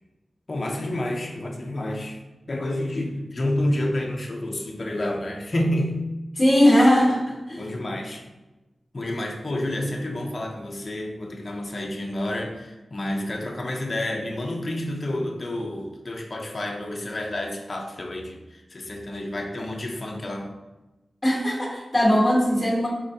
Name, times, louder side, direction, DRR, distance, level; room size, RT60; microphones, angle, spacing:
voice 1, 0.5-2.2 2.5-6.1 7.6-8.2 8.9-20.5, left 1 dB, 35° left, 1 dB, 0.4 m, -29 dB
voice 2, 6.4-7.6 21.2-22.9, equal, 10° left, -3 dB, 1.2 m, -19 dB
4.2 x 3.6 x 2.7 m, 1.1 s
wide cardioid pair, 130°, 0 cm